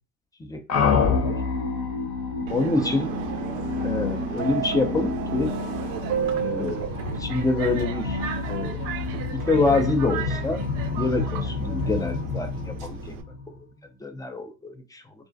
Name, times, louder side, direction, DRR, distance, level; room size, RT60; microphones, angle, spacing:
voice 1, 0.4-1.4 2.5-3.1 3.8-5.5 6.4-6.9 7.2-8.2 8.5-8.8 9.3-10.6 11.0-13.2 14.0-15.0, left 3 dB, 10° left, 0.3 m, -26 dB
sound 1, 0.7-13.6, left 5 dB, 45° left, 0.8 m, -29 dB
Subway metro underground, 2.5-13.2, right 8 dB, 55° right, 0.4 m, -33 dB
2.4 x 2.1 x 2.5 m
hypercardioid pair, 70°, 41 cm